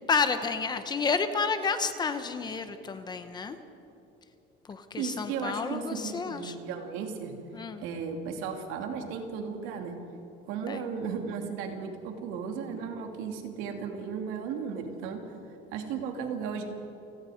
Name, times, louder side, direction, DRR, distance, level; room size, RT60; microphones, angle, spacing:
voice 1, 0.1-3.6 4.7-6.5 7.5-7.8 10.7-10.8, left 5 dB, 20° left, 9 dB, 0.9 m, -30 dB
voice 2, 5.0-7.3 7.8-9.9 10.5-15.3 15.7-16.6, right 6 dB, 75° right, 3 dB, 2.8 m, -35 dB
29.0 x 18.0 x 5.1 m, 2.8 s
cardioid pair, 180°, 21 cm